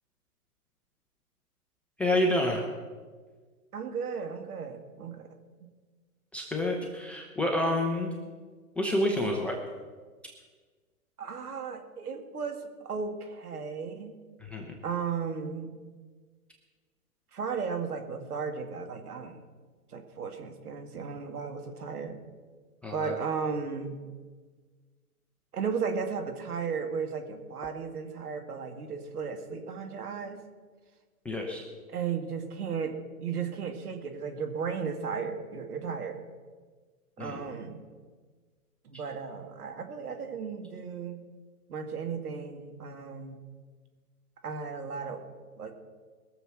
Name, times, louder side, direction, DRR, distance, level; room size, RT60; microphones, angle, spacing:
voice 1, 2.0-2.6 6.3-8.1 8.8-9.5 14.5-14.6 22.8-23.2 31.2-31.6 37.2-37.4, left 1 dB, 5° left, -1 dB, 0.5 m, -28 dB
voice 2, 3.7-5.3 11.2-14.2 14.8-15.7 17.3-19.4 19.9-22.2 22.9-24.0 25.5-30.4 31.9-36.2 37.2-37.9 38.8-41.2 41.7-43.4 44.4-45.3 45.6-45.7, right 6 dB, 75° right, 6 dB, 2.2 m, -35 dB
21.0 x 7.0 x 6.2 m, 1.5 s
hypercardioid pair, 130°, 46 cm